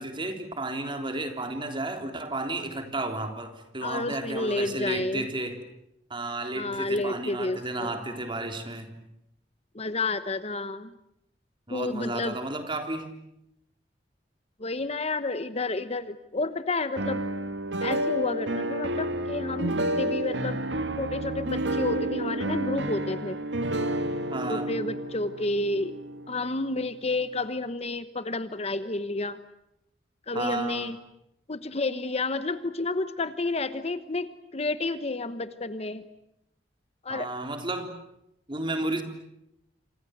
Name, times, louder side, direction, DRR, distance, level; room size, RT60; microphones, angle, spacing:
voice 1, 0.0-5.6 6.1-8.9 11.7-13.1 24.3-24.7 30.3-30.9 37.1-37.9 38.5-39.0, right 2 dB, 30° right, 5 dB, 3.7 m, -32 dB
voice 2, 3.8-5.3 6.5-8.0 9.7-10.9 11.7-12.4 14.6-17.2 17.8-20.6 21.0-23.4 24.5-25.9 26.3-29.4 30.3-31.0 31.5-36.0 37.0-37.3, left 2 dB, 35° left, 12 dB, 1.1 m, -30 dB
sound 1, 17.0-26.9, right 1 dB, 80° right, 2.5 m, -30 dB
28.5 x 26.0 x 8.0 m, 0.82 s
head